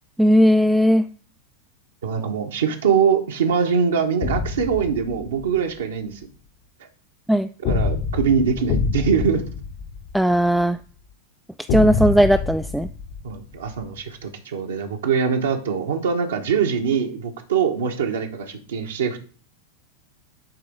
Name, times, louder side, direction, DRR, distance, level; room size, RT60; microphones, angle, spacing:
voice 1, 0.2-1.1 7.3-7.5 10.1-10.8 11.7-12.9, equal, ahead, 7 dB, 0.3 m, -17 dB
voice 2, 2.0-6.2 7.6-9.5 13.2-19.2, right 6 dB, 65° right, 3 dB, 1.0 m, -23 dB
sound 1, 4.2-5.6 7.7-10.6 11.7-13.8, left 4 dB, 45° left, 0.8 m, -26 dB
8.8 x 3.4 x 5.1 m, 0.40 s
figure-of-eight pair, 90°, 0 cm